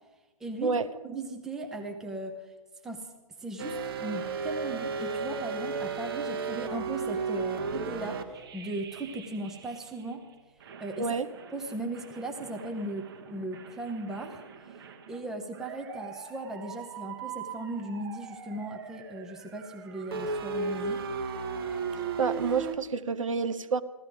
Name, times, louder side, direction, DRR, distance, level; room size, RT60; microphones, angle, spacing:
voice 1, 0.4-2.5 2.8-3.1 3.4-10.3 10.8-11.2 11.5-14.4 15.1-21.0, right 1 dB, ahead, 4 dB, 0.7 m, -37 dB
sound 1, 3.6-10.1 10.6-22.7, right 4 dB, 40° right, 1.2 m, -36 dB
voice 2, 22.2-23.8, right 5 dB, 55° right, 12 dB, 0.8 m, -28 dB
15.5 x 13.0 x 5.1 m, 1.2 s
figure-of-eight pair, 130°, 19 cm